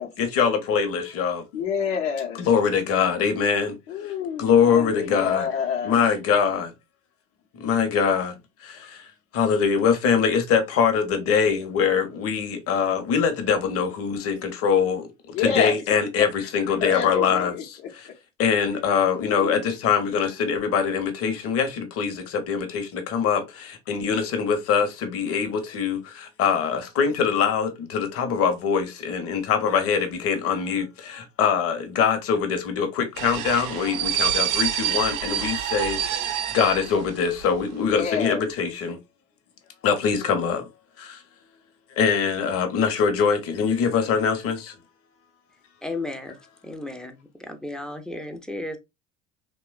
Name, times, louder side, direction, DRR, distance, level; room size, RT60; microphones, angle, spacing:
voice 1, 0.2-1.4 2.4-3.8 4.0-4.1 4.4-5.5 5.8-6.7 7.5-8.3 8.6-18.1 18.4-39.0 39.8-40.7 41.0-41.2 42.0-44.8, left 6 dB, 40° left, 0.7 m, -23 dB
voice 2, 1.5-2.4 3.9-6.0 15.3-15.7 16.8-17.6 19.4-19.7 37.8-38.4, left 7 dB, 80° left, 0.8 m, -28 dB
sound 1, 33.2-37.6 37.8-38.0, right 10 dB, 70° right, 0.6 m, -27 dB
voice 3, 45.8-46.4 46.6-48.8, left 2 dB, ahead, 0.3 m, -34 dB
2.9 x 2.2 x 2.3 m
hypercardioid pair, 75°, 35 cm